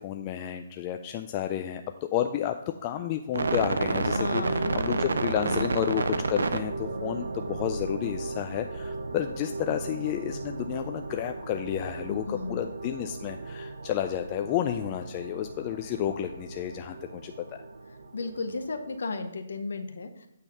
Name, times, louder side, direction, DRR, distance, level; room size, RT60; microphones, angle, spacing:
voice 1, 0.0-2.6 2.8-17.3, left 11 dB, 25° left, 5 dB, 0.3 m, -31 dB
sound 1, 3.3-18.9, right 3 dB, 80° right, 0.5 m, -33 dB
voice 2, 4.1-5.2 5.5-5.9 12.1-12.6 18.1-20.3, left 3 dB, 80° left, 8 dB, 0.7 m, -34 dB
8.4 x 3.5 x 5.5 m, 0.84 s
hypercardioid pair, 160°, 0 cm